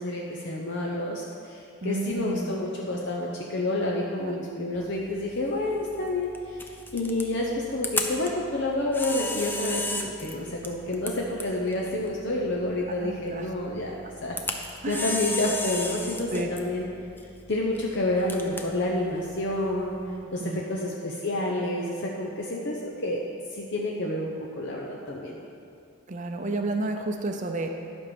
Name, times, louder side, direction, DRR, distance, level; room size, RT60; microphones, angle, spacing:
voice 1, 0.0-13.9 14.2-16.9 17.5-20.0 20.3-23.2 23.5-25.4, left 1 dB, 55° left, -2 dB, 0.8 m, -29 dB
voice 2, 1.8-2.6 4.2-4.3 13.0-13.5 14.8-15.1 16.3-16.5 20.2-20.6 26.1-27.7, right 2 dB, 35° right, 4 dB, 0.6 m, -31 dB
Camera, 4.8-20.2, left 2 dB, 10° left, 0.5 m, -36 dB
11.5 x 5.4 x 6.9 m, 2.5 s
head